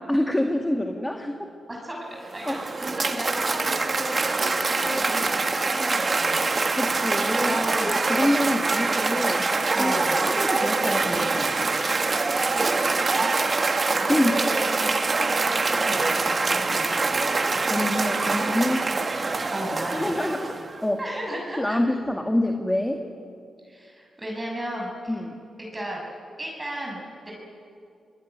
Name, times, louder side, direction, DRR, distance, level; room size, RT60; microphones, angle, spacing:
voice 1, 0.0-1.5 2.4-2.6 6.8-9.5 9.8-10.0 10.3-11.7 13.2-13.3 14.1-14.4 17.7-18.9 19.9-21.0 21.6-23.0 25.1-25.4, left 1 dB, 10° left, 4 dB, 2.1 m, -26 dB
voice 2, 1.7-6.4 7.2-8.0 9.7-10.3 14.0-15.1 15.7-17.1 19.5-20.2 21.0-21.8 23.6-25.2 25.6-26.0 26.4-27.3, equal, 20° right, -2 dB, 6.9 m, -34 dB
Cheering / Applause, 2.2-20.8, right 3 dB, 45° right, 1.9 m, -24 dB
25.0 x 19.5 x 9.6 m, 2.3 s
supercardioid pair, 55°, 0 cm